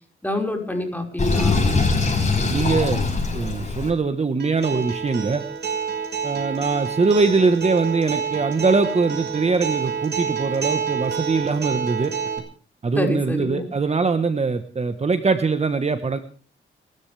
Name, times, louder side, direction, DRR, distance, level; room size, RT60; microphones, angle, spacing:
voice 1, 0.2-1.6 12.9-13.7, left 1 dB, 10° left, 3 dB, 5.3 m, -27 dB
Sink (filling or washing), 1.2-3.9, left 3 dB, 35° left, 6.8 m, -21 dB
voice 2, 2.5-3.1 3.3-5.4 6.2-12.1 12.8-16.2, right 4 dB, 30° right, 9 dB, 1.3 m, -22 dB
Acoustic guitar, 4.4-12.4, right 6 dB, 55° right, 5.8 m, -28 dB
30.0 x 13.5 x 3.5 m, 0.42 s
cardioid pair, 105°, 21 cm